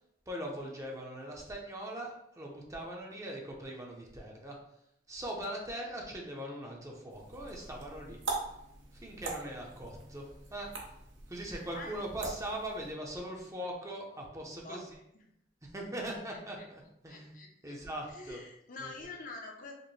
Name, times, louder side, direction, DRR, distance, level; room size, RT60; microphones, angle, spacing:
voice 1, 0.3-4.6 5.1-8.2 8.9-10.7 11.3-14.8 15.7-17.3 17.6-18.4 18.8-18.9, right 1 dB, 15° right, 0 dB, 0.6 m, -41 dB
sound 1, 7.1-12.9, right 3 dB, 80° right, 0.8 m, -42 dB
voice 2, 16.3-16.7 17.1-17.8 18.1-19.7, left 3 dB, 45° left, 1 dB, 0.6 m, -46 dB
5.0 x 2.1 x 3.1 m, 0.76 s
head